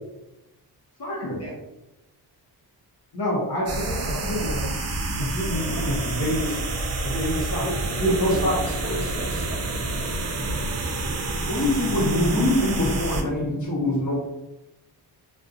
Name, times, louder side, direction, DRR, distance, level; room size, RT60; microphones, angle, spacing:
voice 1, 1.0-1.4 3.1-4.7 5.1-6.6 7.0-7.6 8.0-8.6, equal, 60° left, -4 dB, 0.8 m, -26 dB
sound 1, 3.7-13.2, right 2 dB, 40° right, 0.5 m, -28 dB
voice 2, 5.2-5.9 7.0-7.8 8.1-9.8, equal, 15° left, -5 dB, 0.7 m, -37 dB
voice 3, 11.5-14.2, left 1 dB, 45° left, -5 dB, 1.1 m, -23 dB
2.5 x 2.2 x 2.5 m, 0.95 s
cardioid pair, 90°, 41 cm